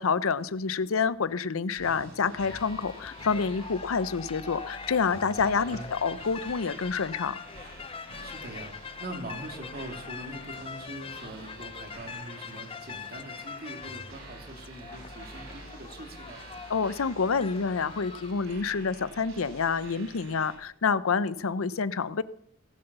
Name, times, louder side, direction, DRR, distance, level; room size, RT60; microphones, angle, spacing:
voice 1, 0.0-7.4 16.7-22.2, left 5 dB, 85° left, 17 dB, 0.6 m, -28 dB
sound 1, 1.7-20.6, right 2 dB, 80° right, 5.8 m, -48 dB
sound 2, 2.5-18.3, left 6 dB, 25° left, 0.5 m, -43 dB
voice 2, 8.2-8.7 9.0-16.4, right 1 dB, 50° right, 4 dB, 2.7 m, -42 dB
18.0 x 8.0 x 6.8 m, 0.68 s
head